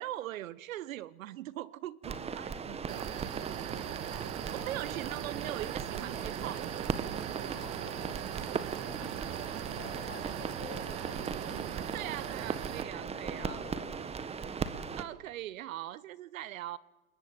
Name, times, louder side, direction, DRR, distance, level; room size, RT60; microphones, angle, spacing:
voice 1, 0.0-2.8 4.1-4.2 4.5-6.9 11.9-13.7 15.0-16.8, right 14 dB, 60° right, 1.1 m, -41 dB
sound 1, 2.0-15.0, right 6 dB, 15° right, 1.4 m, -38 dB
voice 2, 2.4-3.2 3.6-3.7 4.2-4.8 7.5-8.2 8.7-12.4 12.9-14.1, left 8 dB, 30° left, 5.9 m, -52 dB
sound 2, 2.9-12.8, right 13 dB, 35° right, 1.6 m, -40 dB
28.5 x 21.5 x 9.0 m
hypercardioid pair, 130°, 44 cm